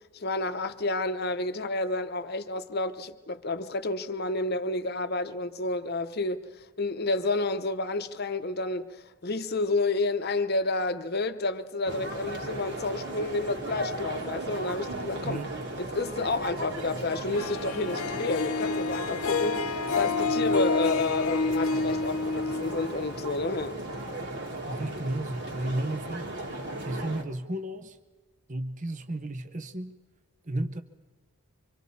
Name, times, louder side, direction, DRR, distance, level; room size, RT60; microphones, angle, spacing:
voice 1, 0.1-15.4 15.8-23.8, left 3 dB, 45° left, 0.8 m, -30 dB
sound 1, 11.9-27.2, right 2 dB, 50° right, 1.9 m, -37 dB
Harp, 17.3-23.6, left 3 dB, 80° left, 0.9 m, -29 dB
voice 2, 24.6-26.3 26.8-28.0 28.5-30.0 30.4-30.8, right 1 dB, 35° right, 0.7 m, -33 dB
25.5 x 25.0 x 4.2 m
head